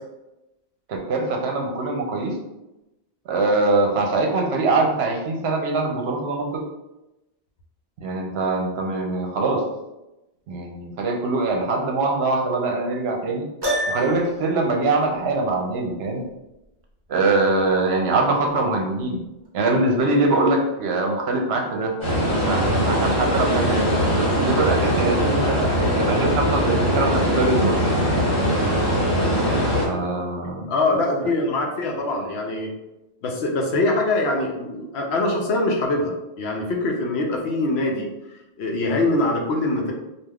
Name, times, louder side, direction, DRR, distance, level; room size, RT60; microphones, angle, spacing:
voice 1, 0.9-2.4 3.3-6.6 8.0-9.6 10.5-13.5 13.9-16.2 17.1-19.2 19.5-21.9 22.3-28.0 29.9-30.7, right 2 dB, 70° right, 1 dB, 0.8 m, -23 dB
Piano, 13.6-14.5, equal, 30° right, 0.6 m, -26 dB
sound 1, 22.0-29.9, equal, 50° left, 1.4 m, -21 dB
voice 2, 30.7-32.7 33.2-39.9, left 2 dB, 75° left, 1 dB, 0.8 m, -23 dB
3.3 x 2.4 x 2.3 m, 0.96 s
omnidirectional pair, 1.1 m